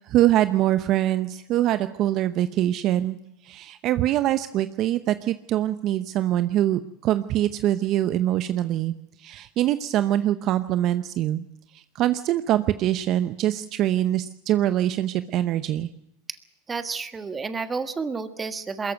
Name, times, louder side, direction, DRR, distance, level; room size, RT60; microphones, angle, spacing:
voice 1, 0.1-3.2 3.4-8.9 9.2-11.4 11.7-15.9, right 13 dB, 45° right, 11 dB, 0.8 m, -24 dB
voice 2, 16.7-18.9, right 4 dB, 20° right, 10 dB, 1.4 m, -30 dB
22.5 x 14.0 x 9.2 m, 0.86 s
hypercardioid pair, 115°, 0 cm